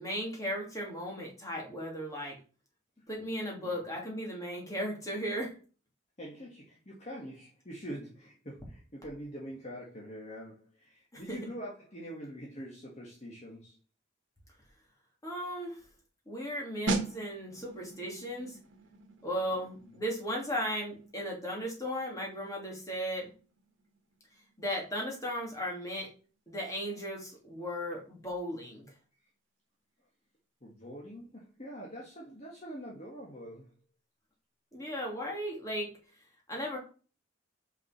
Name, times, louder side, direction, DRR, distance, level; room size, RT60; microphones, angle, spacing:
voice 1, 0.0-2.4 3.1-5.5 11.1-11.4 15.2-15.8 16.3-18.6 19.2-23.3 24.6-26.1 26.5-28.8 34.7-35.9 36.5-36.8, equal, 15° left, -2 dB, 2.8 m, -36 dB
voice 2, 6.2-13.8 19.8-20.0 30.6-33.7, equal, 35° left, -3 dB, 1.7 m, -44 dB
sound 1, 16.9-27.4 27.6-27.9, right 3 dB, 80° right, 1.5 m, -42 dB
5.7 x 5.3 x 5.9 m, 0.37 s
head